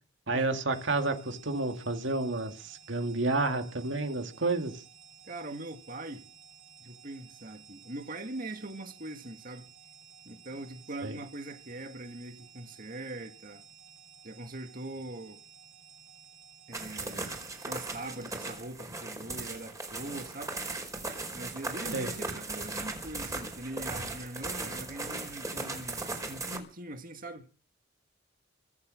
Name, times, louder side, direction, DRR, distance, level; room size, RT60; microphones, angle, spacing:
voice 1, 0.3-4.8 11.0-11.2 21.9-22.1, right 3 dB, 60° right, 2.2 m, -30 dB
sound 1, 0.7-18.5, right 7 dB, 80° right, 6.7 m, -55 dB
voice 2, 5.2-6.3 6.8-9.7 10.3-13.6 14.2-15.4 16.7-17.3 17.6-20.6 21.3-27.5, right 2 dB, 45° right, 2.0 m, -42 dB
sound 2, 16.7-26.6, right 3 dB, 15° right, 4.8 m, -38 dB
25.0 x 8.4 x 6.4 m
head